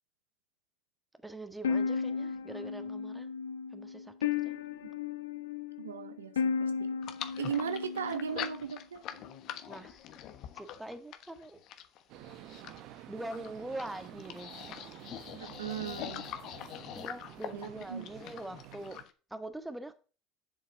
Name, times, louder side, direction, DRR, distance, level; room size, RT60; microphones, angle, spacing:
voice 1, 1.2-3.3 3.7-4.1 4.4-4.6 9.7-10.0 10.5-11.6 13.1-14.8 16.9-19.0 19.3-19.9, right 2 dB, 10° right, 1.6 m, -43 dB
sound 1, 1.6-8.8, left 6 dB, 85° left, 0.5 m, -34 dB
voice 2, 5.8-6.9 7.4-9.0 15.4-16.3 17.5-18.1, right 8 dB, 90° right, 0.7 m, -37 dB
sound 2, 7.0-19.1, left 10 dB, 55° left, 1.1 m, -44 dB
sound 3, 12.1-19.0, right 13 dB, 60° right, 0.9 m, -50 dB
7.6 x 7.3 x 4.7 m
hypercardioid pair, 70°, 0 cm